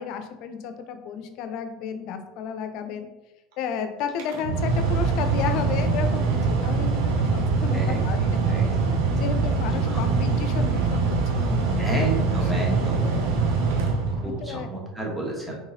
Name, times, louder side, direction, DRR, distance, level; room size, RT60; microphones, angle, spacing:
voice 1, 0.0-3.1 3.6-8.7 9.1-11.9 12.6-12.7 13.0-13.3 13.7-13.9 14.2-14.7, left 7 dB, 60° left, 7 dB, 0.5 m, -33 dB
Mechanical fan, 4.1-14.6, right 4 dB, 75° right, 0.7 m, -23 dB
voice 2, 8.5-8.9 9.8-10.0 11.8-13.1 14.1-15.6, right 2 dB, 5° right, -3 dB, 1.2 m, -30 dB
3.8 x 3.1 x 2.6 m, 1.0 s
hypercardioid pair, 80°, 0 cm